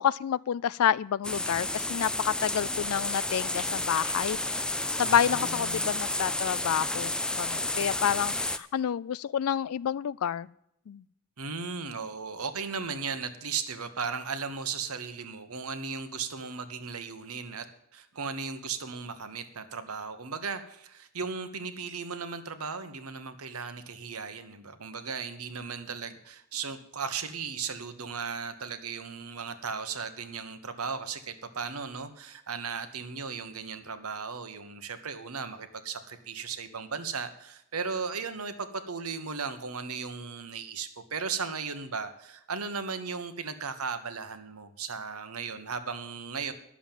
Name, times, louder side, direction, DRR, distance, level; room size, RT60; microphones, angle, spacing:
voice 1, 0.0-4.6 5.0-10.5 10.9-11.0, left 9 dB, 80° left, 19 dB, 0.4 m, -29 dB
sound 1, 1.2-8.6, left 2 dB, 5° left, 0.3 m, -31 dB
voice 2, 5.0-5.9 11.4-17.7 17.9-46.5, right 5 dB, 85° right, 10 dB, 1.2 m, -36 dB
11.0 x 7.3 x 7.3 m, 0.78 s
head